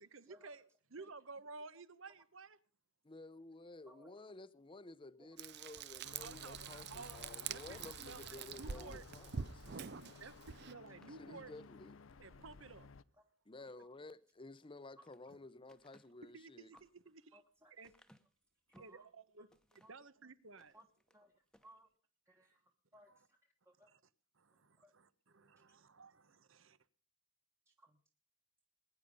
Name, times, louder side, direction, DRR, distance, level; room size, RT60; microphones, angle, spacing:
voice 1, 0.0-2.6 6.2-9.0 10.2-11.5 12.2-12.9 15.3-15.4 16.3-17.4 17.7-17.9 18.8-20.8 23.1-23.2 23.9-24.0 24.4-26.8, right 4 dB, 70° right, 1.0 m, -54 dB
voice 2, 3.0-9.9 11.2-12.0 13.5-16.7, left 2 dB, 25° left, 0.7 m, -54 dB
Frying (food), 5.4-10.7, right 7 dB, 55° right, 0.6 m, -46 dB
sound 1, 6.0-13.0, left 4 dB, 70° left, 0.6 m, -56 dB
sound 2, 6.7-9.2 9.7-9.9 10.3-10.4 10.8-11.8 12.3-12.7 14.5-15.2 15.7-19.0 19.5-20.1 20.5-21.2 21.5-21.8, equal, 5° left, 1.0 m, -69 dB
voice 3, 17.3-17.7 18.7-19.1 19.8-19.9 20.7-20.9 21.1-21.3 21.6-21.9 22.2-23.4 23.6-23.9 24.8-24.9 25.7-25.8 27.7-28.0, right 1 dB, 15° right, 1.2 m, -63 dB
21.0 x 9.9 x 5.3 m
head